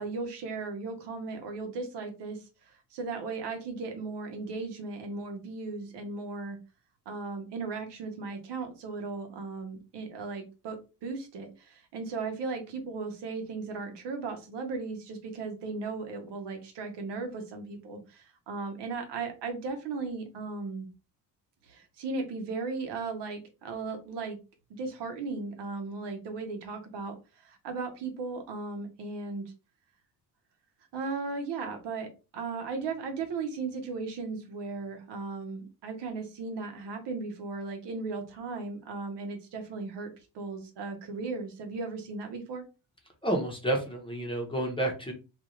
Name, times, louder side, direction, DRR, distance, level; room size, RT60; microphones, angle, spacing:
voice 1, 0.0-6.6 7.1-20.9 21.6-24.4 24.7-29.4 30.9-40.1 40.3-42.6, right 4 dB, 80° right, 5 dB, 0.9 m, -36 dB
voice 2, 43.2-45.1, right 1 dB, 10° left, 2 dB, 0.8 m, -30 dB
2.6 x 2.4 x 3.0 m, 0.30 s
cardioid pair, 110°, 41 cm